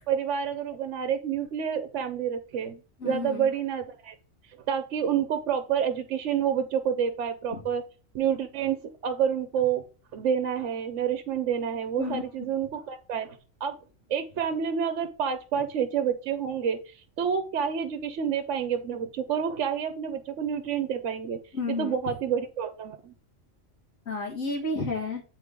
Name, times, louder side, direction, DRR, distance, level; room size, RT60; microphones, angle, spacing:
voice 1, 0.1-4.1 4.7-7.8 8.1-9.8 10.1-13.8 14.1-21.4 21.7-23.1, right 8 dB, 70° right, 9 dB, 1.0 m, -28 dB
voice 2, 3.0-3.5 7.5-7.6 12.0-12.2 21.5-21.9 24.1-25.2, left 3 dB, 85° left, -1 dB, 2.2 m, -31 dB
8.2 x 4.3 x 3.6 m, 0.37 s
omnidirectional pair, 1.4 m